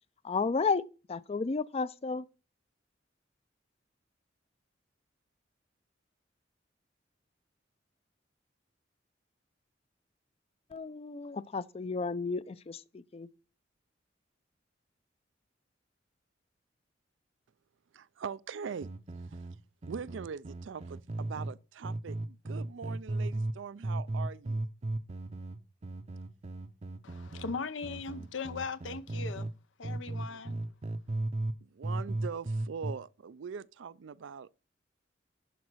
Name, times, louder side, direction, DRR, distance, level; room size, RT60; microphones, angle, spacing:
voice 1, 0.2-0.8 1.1-2.3 10.7-13.3, left 4 dB, 35° left, 0.4 m, -32 dB
voice 2, 17.9-18.9 19.3-19.5 19.9-24.6 30.1-30.4 31.6-34.5, right 6 dB, 85° right, 0.4 m, -42 dB
sound 1, 18.8-21.5 21.8-23.6 23.8-29.5 29.8-31.6 31.8-32.9, right 2 dB, 35° right, 0.6 m, -36 dB
voice 3, 27.0-29.5 29.8-30.6, left 4 dB, 85° left, 0.7 m, -39 dB
11.0 x 4.1 x 6.1 m
head